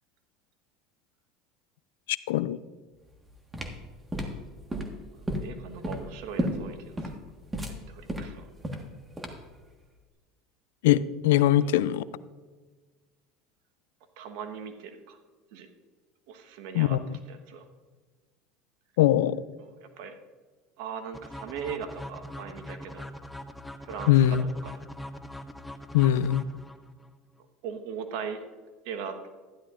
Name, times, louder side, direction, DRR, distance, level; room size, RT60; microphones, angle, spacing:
voice 1, 2.1-2.6 10.8-12.0 16.7-17.0 19.0-19.4 24.1-24.5 25.9-26.4, left 12 dB, 80° left, 17 dB, 0.3 m, -22 dB
sound 1, 3.1-9.6, equal, 15° right, 1.5 m, -33 dB
voice 2, 5.4-7.1 7.9-8.4 11.3-11.4 14.2-15.2 15.5-15.7 16.3-17.0 17.3-17.6 19.6-20.1 20.8-23.1 23.8-24.4 24.6-24.8 27.6-28.4 28.8-29.3, right 6 dB, 70° right, 8 dB, 1.2 m, -39 dB
sound 2, 21.1-27.1, left 1 dB, 5° left, 0.6 m, -42 dB
12.5 x 11.0 x 2.5 m, 1.4 s
supercardioid pair, 95°, 0 cm